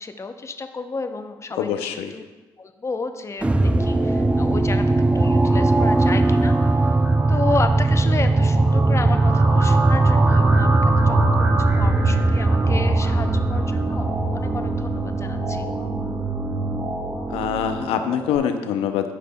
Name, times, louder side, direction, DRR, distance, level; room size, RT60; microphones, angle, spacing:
voice 1, 0.0-2.2 2.6-6.9 7.3-10.8 11.0-11.3 11.6-15.7, left 3 dB, 30° left, 7 dB, 0.7 m, -31 dB
voice 2, 1.6-2.1 17.3-19.1, left 8 dB, 80° left, 7 dB, 0.5 m, -24 dB
sound 1, 3.4-15.6, right 2 dB, 10° right, 0.3 m, -19 dB
sound 2, 3.4-18.4, right 2 dB, 30° right, 1.1 m, -29 dB
sound 3, 9.8-17.6, right 2 dB, 45° right, 1.3 m, -29 dB
12.0 x 4.9 x 2.2 m, 1.2 s
supercardioid pair, 55°, 10 cm